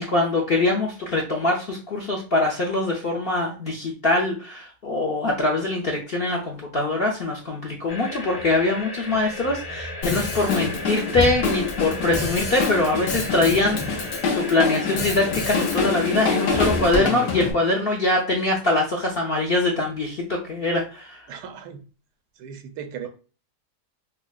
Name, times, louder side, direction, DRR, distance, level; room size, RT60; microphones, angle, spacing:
voice 1, 0.0-21.2, left 2 dB, 60° left, 0.6 m, -23 dB
sound 1, 7.9-16.9, left 1 dB, 15° left, 0.7 m, -33 dB
Drum kit, 10.0-17.5, left 4 dB, 80° left, 1.4 m, -26 dB
voice 2, 21.3-21.8 22.4-23.1, right 8 dB, 85° right, 1.2 m, -36 dB
5.8 x 2.1 x 2.3 m
omnidirectional pair, 1.7 m